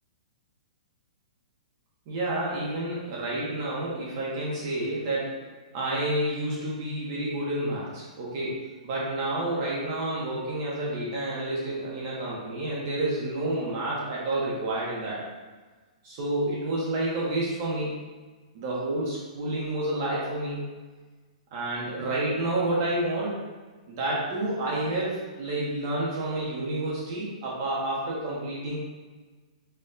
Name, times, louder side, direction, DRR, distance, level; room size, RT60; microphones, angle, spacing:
voice 1, 2.1-15.2 16.0-18.0 18.5-20.7 21.5-23.4 23.9-28.8, right 1 dB, 30° right, -5 dB, 0.7 m, -29 dB
4.3 x 2.2 x 3.7 m, 1.3 s
hypercardioid pair, 180°, 4 cm